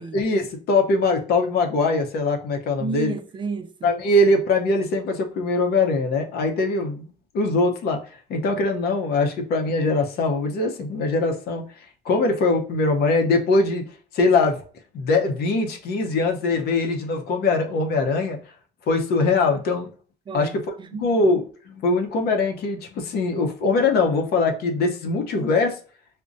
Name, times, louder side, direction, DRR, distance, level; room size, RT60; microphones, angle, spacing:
voice 1, 0.0-3.1 3.8-7.0 7.3-8.0 8.3-11.6 12.0-13.8 14.1-14.6 14.9-18.4 18.9-19.9 20.3-20.5 21.0-25.8, left 3 dB, 70° left, 0.8 m, -22 dB
voice 2, 2.8-3.9 20.3-21.1, right 5 dB, 30° right, 0.4 m, -32 dB
5.0 x 2.2 x 2.6 m
cardioid pair, 110°, 17 cm